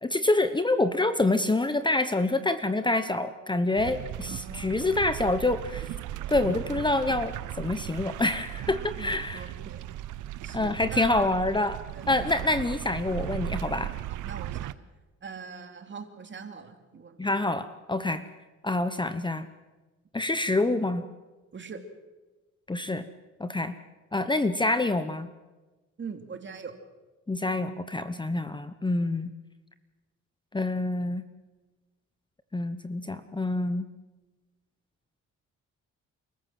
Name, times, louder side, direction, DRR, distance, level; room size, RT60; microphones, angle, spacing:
voice 1, 0.0-5.9 6.3-9.5 10.5-11.8 12.1-13.9 17.2-18.2 18.6-19.5 20.1-21.1 22.7-23.1 23.4-23.7 24.1-25.3 27.3-29.3 30.5-31.3 32.5-33.9, left 2 dB, 15° left, 11 dB, 1.0 m, -27 dB
sound 1, 3.8-14.7, right 13 dB, 80° right, 0.8 m, -37 dB
voice 2, 4.3-4.9 8.6-9.9 10.4-11.3 11.9-12.3 14.0-14.7 15.2-17.3 21.5-21.8 26.0-26.7, right 5 dB, 40° right, 6 dB, 2.8 m, -42 dB
29.5 x 14.5 x 7.7 m, 1.2 s
cardioid pair, 90°, 30 cm